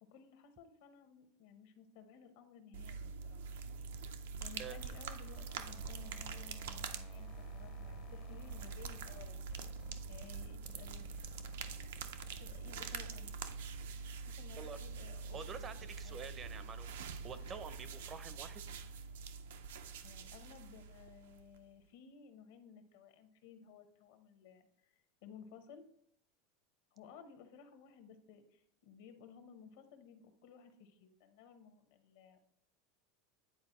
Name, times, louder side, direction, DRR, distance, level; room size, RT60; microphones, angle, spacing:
voice 1, 0.1-3.5 4.4-9.4 10.1-11.1 12.4-13.3 14.2-15.6 16.0-16.2 20.0-25.8 26.9-32.4, left 7 dB, 75° left, 8 dB, 0.9 m, -57 dB
sound 1, 2.7-21.6, right 5 dB, 90° right, 0.5 m, -45 dB
sound 2, 3.4-14.0 14.3-18.2, left 5 dB, 35° left, 0.5 m, -62 dB
voice 2, 15.3-16.9 17.2-18.6, right 6 dB, 30° right, 12 dB, 0.5 m, -47 dB
9.4 x 4.2 x 3.0 m, 0.69 s
supercardioid pair, 140°, 0 cm